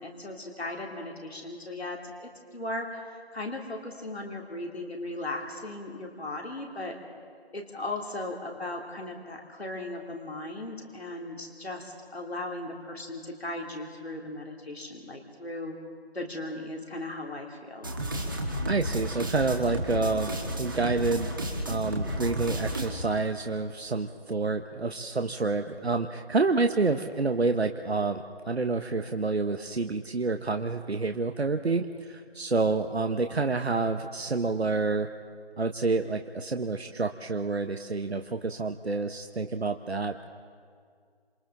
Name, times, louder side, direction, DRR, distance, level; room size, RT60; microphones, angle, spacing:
voice 1, 0.0-7.0 7.5-15.7 16.1-17.9, left 2 dB, 80° left, 1 dB, 3.0 m, -37 dB
sound 1, 17.8-22.9, equal, 20° right, 1.4 m, -32 dB
voice 2, 18.7-21.3 21.7-35.1 35.6-40.2, right 3 dB, 85° right, 6 dB, 1.0 m, -28 dB
27.5 x 26.5 x 3.9 m, 2.1 s
figure-of-eight pair, 170°, 31 cm